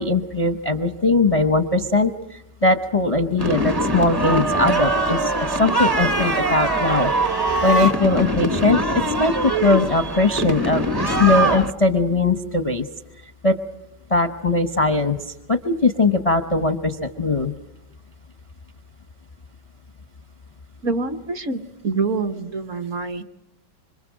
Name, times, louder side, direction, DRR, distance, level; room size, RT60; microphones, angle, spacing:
voice 1, 0.0-10.8 11.2-12.9 13.4-13.6 14.1-17.5, left 3 dB, 35° left, 7 dB, 0.5 m, -20 dB
sound 1, 3.4-11.7, right 2 dB, 20° right, 0.7 m, -23 dB
sound 2, 5.6-8.3, right 2 dB, 75° right, 2.1 m, -27 dB
voice 2, 20.8-23.2, right 4 dB, 50° right, 6 dB, 1.2 m, -26 dB
26.5 x 25.5 x 6.3 m, 0.91 s
omnidirectional pair, 1.9 m